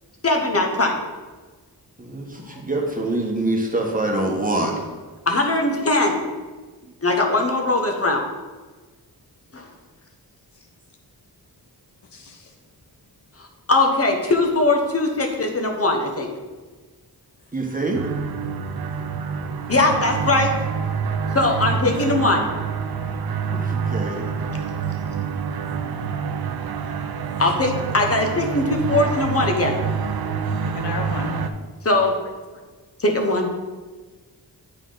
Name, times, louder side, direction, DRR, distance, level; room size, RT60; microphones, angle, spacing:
voice 1, 0.2-0.9 5.3-6.2 7.0-8.2 9.5-9.7 13.7-16.3 19.7-20.5 21.3-22.4 27.4-29.8 31.8-32.1 33.0-33.5, left 2 dB, 35° left, 2 dB, 1.1 m, -20 dB
voice 2, 2.0-4.7 6.8-6.9 17.5-18.0 21.7-22.5 23.5-24.2 25.7-26.0, right 2 dB, 20° right, 0 dB, 1.2 m, -26 dB
voice 3, 12.1-12.5 19.6-19.7 30.6-31.4, left 3 dB, 90° left, 3 dB, 1.0 m, -33 dB
sound 1, 17.9-31.5, right 6 dB, 65° right, 0.6 m, -27 dB
8.8 x 4.5 x 3.9 m, 1.3 s
wide cardioid pair, 90°, 40 cm